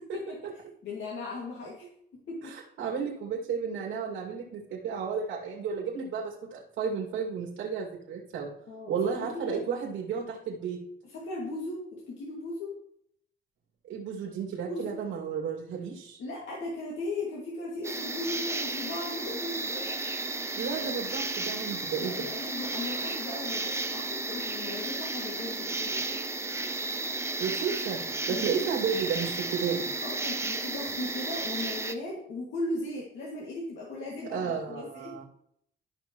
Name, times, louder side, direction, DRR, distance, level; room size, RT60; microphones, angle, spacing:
voice 1, 0.1-1.9 2.3-2.6 8.7-8.9 9.5-9.6 11.0-12.7 14.7-15.0 16.2-20.0 22.0-26.1 28.3-28.7 30.0-35.1, left 2 dB, 70° left, -4 dB, 2.3 m, -37 dB
voice 2, 2.4-8.5 8.9-10.8 13.9-16.2 20.6-22.3 27.4-29.9 34.3-35.2, right 6 dB, 90° right, -2 dB, 2.3 m, -33 dB
sound 1, 17.8-31.9, right 2 dB, 15° right, 0.7 m, -33 dB
13.5 x 5.5 x 3.1 m, 0.69 s
cardioid pair, 90°, 20 cm